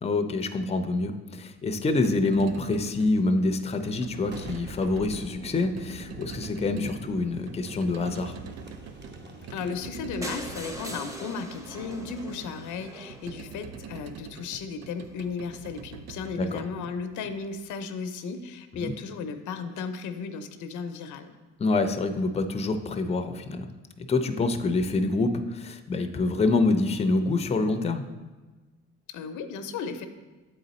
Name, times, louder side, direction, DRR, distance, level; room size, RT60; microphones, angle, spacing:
voice 1, 0.0-8.3 16.4-16.6 18.8-18.9 21.6-23.7 24.0-28.1, left 3 dB, 20° left, 8 dB, 0.5 m, -26 dB
sound 1, 1.6-17.8, right 7 dB, 60° right, 0.5 m, -45 dB
Boom, 4.2-13.8, right 2 dB, 35° right, 0.9 m, -46 dB
voice 2, 9.5-21.3 29.1-30.1, left 5 dB, 80° left, 9 dB, 0.6 m, -35 dB
sound 2, 10.2-14.1 14.7-14.8 15.1-15.2 15.5-15.6 15.7-15.8, equal, 10° right, 0.8 m, -41 dB
7.8 x 3.9 x 4.1 m, 1.2 s
cardioid pair, 90°, 30 cm